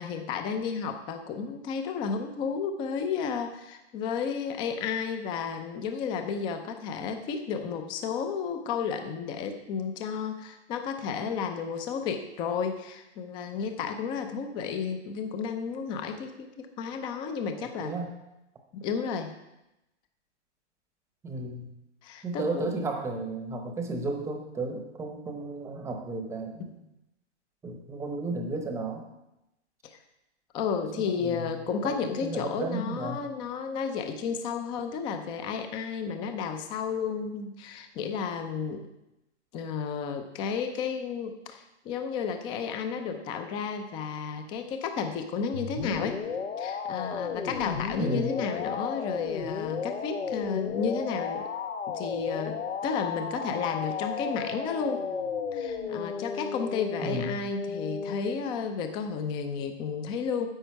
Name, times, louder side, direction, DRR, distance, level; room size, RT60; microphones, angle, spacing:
voice 1, 0.0-17.9 18.7-19.3 22.0-22.7 26.6-26.7 29.9-30.0 30.5-38.9 39.5-46.2 46.6-51.5 51.9-55.0 55.5-60.5, left 6 dB, 15° left, 7 dB, 0.5 m, -32 dB
voice 2, 17.6-18.1 21.2-21.7 22.2-26.8 27.6-29.0 30.9-33.2 48.0-48.3 57.0-57.3, right 2 dB, 10° right, 4 dB, 0.8 m, -34 dB
sound 1, 45.5-58.4, left 5 dB, 90° left, 1.2 m, -34 dB
10.0 x 7.8 x 4.5 m, 0.92 s
hypercardioid pair, 140°, 36 cm